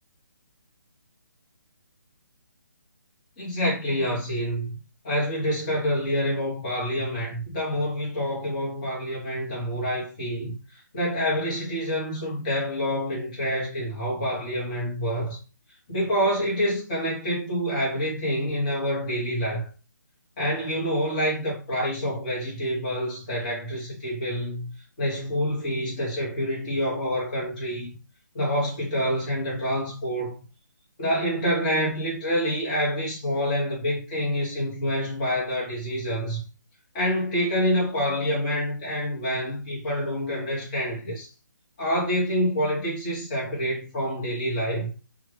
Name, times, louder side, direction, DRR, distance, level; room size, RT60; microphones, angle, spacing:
voice 1, 3.4-4.7 5.0-15.4 15.9-19.7 20.4-24.7 25.0-27.9 28.3-30.3 31.0-36.4 36.9-41.3 41.8-44.9, equal, 25° left, 1.3 m, -27 dB
3.1 x 2.4 x 3.4 m
hypercardioid pair, 170°, 11 cm